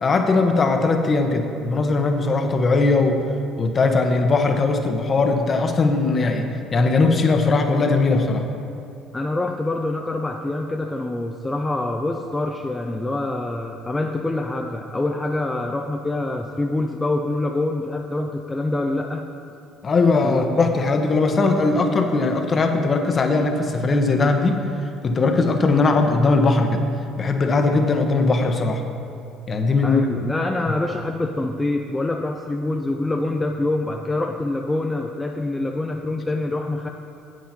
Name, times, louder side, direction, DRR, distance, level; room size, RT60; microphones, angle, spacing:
voice 1, 0.0-3.2 3.6-8.4 19.8-24.6 25.0-26.9 27.2-28.8 29.5-30.0, left 3 dB, 40° left, 5 dB, 1.1 m, -19 dB
voice 2, 9.1-19.3 20.2-20.6 29.8-36.9, left 2 dB, 15° left, 3 dB, 0.6 m, -25 dB
9.2 x 8.5 x 4.3 m, 2.8 s
hypercardioid pair, 70°, 0 cm